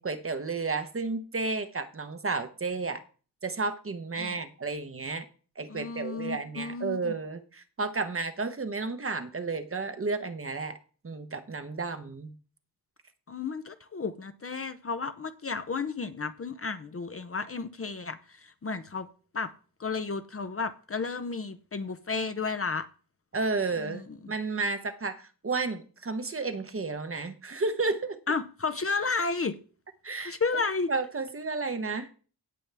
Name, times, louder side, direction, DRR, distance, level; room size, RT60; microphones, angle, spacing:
voice 1, 0.0-3.0 3.4-5.2 5.6-10.8 11.0-12.3 23.3-28.2 30.0-32.1, right 3 dB, 35° right, 0.9 m, -32 dB
voice 2, 5.7-7.1 13.3-19.1 19.3-19.5 19.8-22.9 23.8-24.0 28.3-29.6 30.2-30.9, left 4 dB, 35° left, 0.6 m, -32 dB
17.0 x 7.0 x 3.4 m
wide cardioid pair, 170°, 40 cm